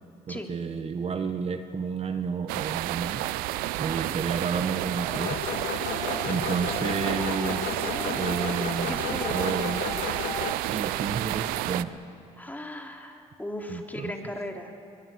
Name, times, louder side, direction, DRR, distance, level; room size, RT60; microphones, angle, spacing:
voice 1, 0.3-3.3 3.7-5.4 6.2-9.8 10.6-11.9 13.7-14.1, right 5 dB, 45° right, 7 dB, 1.4 m, -31 dB
sound 1, 2.5-11.8, right 16 dB, 85° right, 0.6 m, -30 dB
sound 2, 4.3-10.4, left 2 dB, 85° left, 5.7 m, -40 dB
sound 3, 5.1-10.5, left 13 dB, 70° left, 0.5 m, -34 dB
voice 2, 7.5-8.3 8.9-9.8 12.4-14.7, left 1 dB, 10° left, 2 dB, 3.2 m, -38 dB
23.5 x 21.5 x 6.4 m, 2.6 s
supercardioid pair, 65°, 15 cm